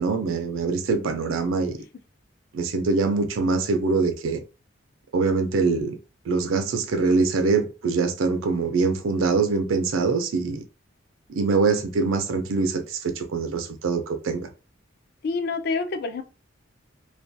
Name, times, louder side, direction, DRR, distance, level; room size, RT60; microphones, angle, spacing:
voice 1, 0.0-1.8 2.5-4.4 5.1-6.0 6.3-10.6 11.3-14.5, right 4 dB, 80° right, 0.4 m, -24 dB
voice 2, 15.2-16.2, left 4 dB, 50° left, 0.3 m, -27 dB
2.3 x 2.2 x 2.6 m
head